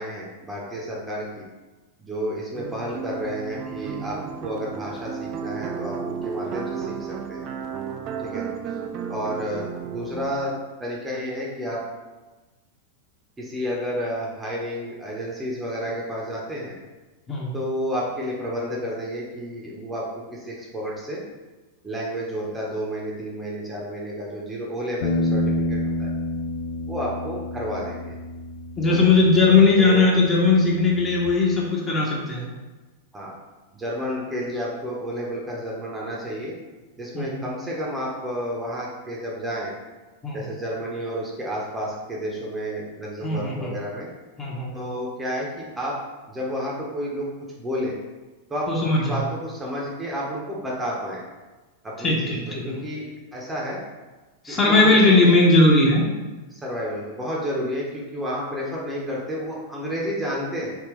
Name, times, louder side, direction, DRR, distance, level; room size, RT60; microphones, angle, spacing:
voice 1, 0.0-1.4 2.0-7.4 8.2-8.4 9.1-10.5 10.8-11.8 13.4-16.8 17.5-21.2 21.8-26.1 26.9-28.1 28.9-29.1 29.8-30.1 33.1-33.3 33.7-36.5 37.0-39.7 40.3-44.1 44.7-46.0 46.3-47.3 47.6-48.0 48.5-51.3 51.8-53.1 53.3-53.8 54.5-55.4 56.5-60.8, equal, 15° right, -3 dB, 0.7 m, -31 dB
sound 1, 2.5-10.3, right 6 dB, 40° right, 0.3 m, -33 dB
sound 2, 25.0-31.3, left 1 dB, 65° left, 0.4 m, -29 dB
voice 2, 28.8-32.5 37.1-37.4 40.2-40.5 43.2-43.7 44.4-44.7 48.7-49.2 52.0-52.8 54.4-56.1, left 3 dB, 20° left, -3 dB, 0.9 m, -19 dB
3.4 x 2.8 x 3.0 m, 1.2 s
figure-of-eight pair, 95°, 0 cm